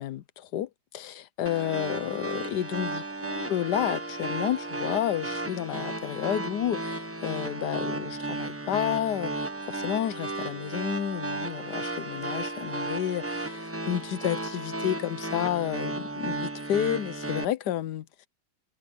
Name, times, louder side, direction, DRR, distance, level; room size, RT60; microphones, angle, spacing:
voice 1, 0.0-18.1, left 11 dB, 75° left, 1.4 m, -31 dB
sound 1, 1.5-17.5, right 2 dB, 10° right, 0.9 m, -34 dB
omnidirectional pair, 1.9 m